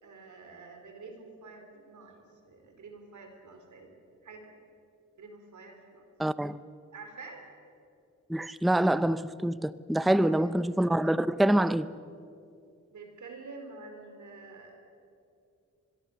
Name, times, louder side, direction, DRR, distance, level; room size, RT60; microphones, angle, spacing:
voice 1, 0.0-3.9 4.2-4.5 5.2-6.1 6.9-7.5 9.9-10.5 12.9-14.8, right 3 dB, 90° right, 4.0 m, -48 dB
voice 2, 6.2-6.6 8.3-11.9, right 1 dB, ahead, 0.5 m, -26 dB
24.0 x 22.0 x 7.0 m
wide cardioid pair, 90°, 29 cm